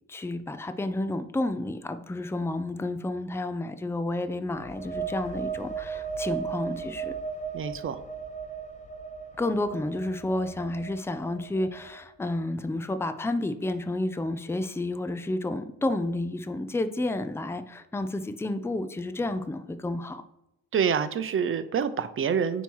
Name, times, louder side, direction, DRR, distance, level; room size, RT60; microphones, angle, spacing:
voice 1, 0.1-7.1 9.4-20.2, left 2 dB, 10° left, 10 dB, 0.5 m, -30 dB
sound 1, 4.5-12.1, right 6 dB, 25° left, 1.0 m, -36 dB
voice 2, 7.5-8.0 20.7-22.6, right 7 dB, 45° right, 12 dB, 0.7 m, -27 dB
9.1 x 3.0 x 5.5 m, 0.86 s
cardioid pair, 90°, 30 cm